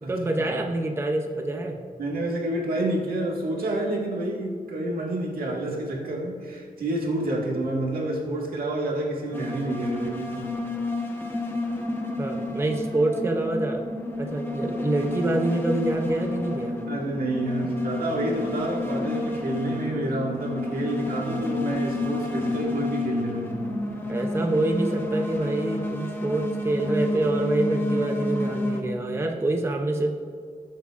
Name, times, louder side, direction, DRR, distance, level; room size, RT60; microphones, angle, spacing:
voice 1, 0.1-1.8 12.2-13.8 14.2-16.8 24.1-30.1, right 2 dB, 15° right, 3 dB, 0.6 m, -26 dB
voice 2, 2.0-10.5 16.9-23.7, right 1 dB, 80° right, -2 dB, 1.8 m, -29 dB
sound 1, 9.3-28.8, left 2 dB, 15° left, 0.9 m, -30 dB
19.5 x 7.4 x 2.5 m, 2.1 s
wide cardioid pair, 175°, 15 cm